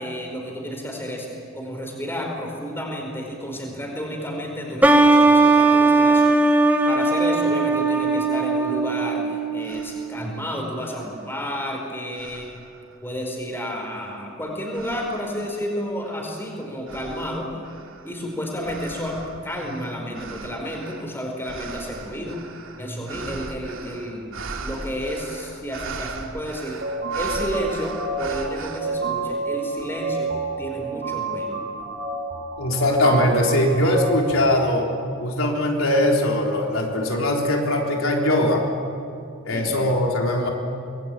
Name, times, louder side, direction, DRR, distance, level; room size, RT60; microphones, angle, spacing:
voice 1, 0.0-6.4 6.9-12.6 13.0-17.5 18.0-22.4 22.8-24.3 24.6-26.8 27.1-30.3 30.6-31.6 39.5-39.8, equal, 10° left, 1 dB, 4.6 m, -31 dB
sound 1, 4.8-10.3, right 3 dB, 10° right, 1.3 m, -18 dB
sound 2, 9.1-9.2 9.6-10.2 10.8-11.7 12.1-13.0 13.6-14.1 14.7-15.5 16.0-28.8, right 4 dB, 75° right, 2.6 m, -39 dB
sound 3, 26.8-34.8, right 3 dB, 50° right, 4.5 m, -29 dB
voice 2, 32.6-34.9 35.2-38.6 39.4-40.5, left 1 dB, 85° left, 0 dB, 3.8 m, -21 dB
25.0 x 21.0 x 9.1 m, 2.5 s
head